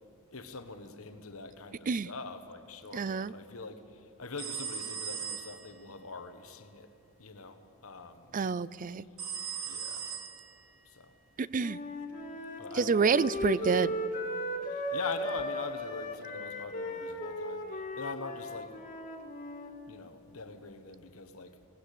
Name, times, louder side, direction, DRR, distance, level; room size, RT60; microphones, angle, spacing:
voice 1, 0.3-6.9 7.2-8.4 9.7-10.1 10.8-11.1 12.6-13.8 14.7-18.8 19.9-21.7, left 3 dB, 70° left, 1.4 m, -43 dB
voice 2, 2.9-3.3 8.3-9.1 11.4-11.8 12.7-14.0, right 5 dB, 40° right, 0.4 m, -28 dB
sound 1, 4.4-5.8 9.2-10.8, right 7 dB, 80° right, 3.4 m, -39 dB
Wind instrument woodwind instrument, 11.6-19.7, equal, 35° left, 2.4 m, -36 dB
20.0 x 18.5 x 8.5 m
head